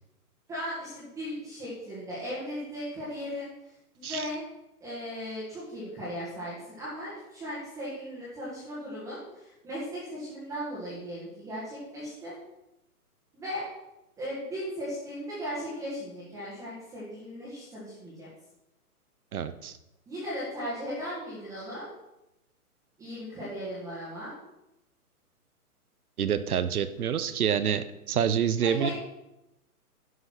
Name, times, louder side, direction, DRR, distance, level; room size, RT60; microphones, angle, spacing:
voice 1, 0.5-4.4 4.8-12.3 13.3-13.7 14.2-18.3 20.1-21.9 23.0-24.3 28.6-28.9, equal, 5° right, -9 dB, 1.7 m, -37 dB
voice 2, 19.3-19.8 26.2-28.9, right 8 dB, 70° right, 13 dB, 1.0 m, -27 dB
11.0 x 5.6 x 6.0 m, 0.91 s
hypercardioid pair, 170°, 46 cm